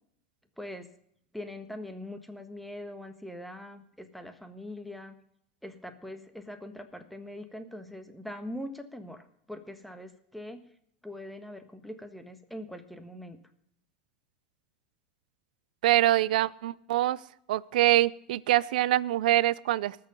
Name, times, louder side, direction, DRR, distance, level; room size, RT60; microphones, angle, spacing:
voice 1, 0.6-0.9 1.3-5.2 5.6-10.6 11.0-13.4, left 1 dB, ahead, 7 dB, 1.5 m, -42 dB
voice 2, 15.8-17.2 17.5-20.0, right 14 dB, 75° right, 21 dB, 0.5 m, -24 dB
19.5 x 6.6 x 5.3 m, 0.70 s
hypercardioid pair, 110°, 5 cm